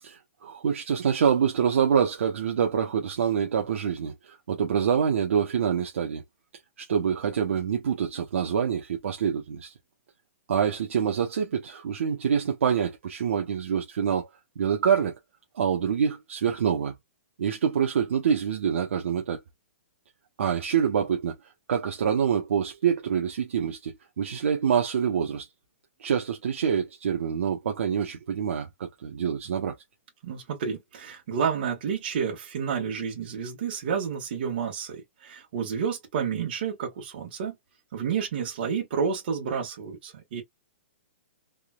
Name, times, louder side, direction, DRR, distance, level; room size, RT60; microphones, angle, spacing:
voice 1, 0.0-6.2 6.8-9.7 10.5-14.3 14.6-15.2 15.5-17.0 17.4-19.4 20.4-21.4 21.7-25.5 26.0-29.7, right 7 dB, 70° right, 1.0 m, -26 dB
voice 2, 30.2-37.6 37.9-40.4, right 6 dB, 45° right, 1.7 m, -30 dB
3.6 x 3.0 x 2.3 m
hypercardioid pair, 170°, 7 cm